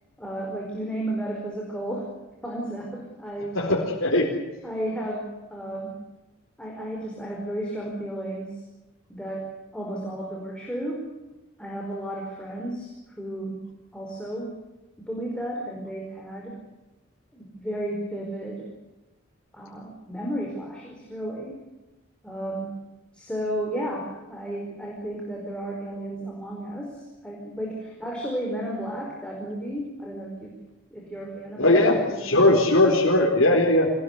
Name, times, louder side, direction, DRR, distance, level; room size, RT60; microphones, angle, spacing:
voice 1, 0.2-2.1 2.4-3.6 4.6-6.0 6.6-8.6 9.1-11.1 11.6-12.9 13.2-13.6 13.9-14.5 15.0-16.6 17.3-18.7 19.5-21.6 22.2-22.8 23.1-30.6 30.9-32.5, right 1 dB, 5° left, -1 dB, 4.8 m, -33 dB
voice 2, 3.5-4.3 31.6-33.9, left 1 dB, 80° left, 0 dB, 4.2 m, -19 dB
26.5 x 19.5 x 8.2 m, 1.1 s
head